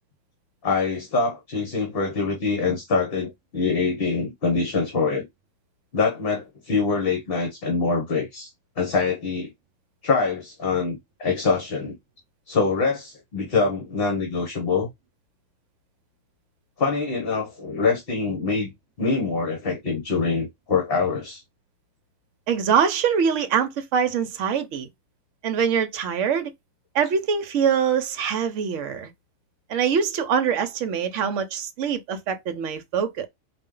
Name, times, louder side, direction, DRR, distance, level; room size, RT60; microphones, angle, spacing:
voice 1, 0.6-5.3 5.9-8.5 8.8-9.5 10.0-12.0 12.5-14.9 16.8-18.7 19.0-21.4, left 4 dB, 45° left, 1.2 m, -24 dB
voice 2, 22.5-24.9 25.4-26.5 26.9-29.1 29.7-33.3, right 7 dB, 65° right, 1.0 m, -24 dB
4.2 x 2.6 x 3.7 m
omnidirectional pair, 1.4 m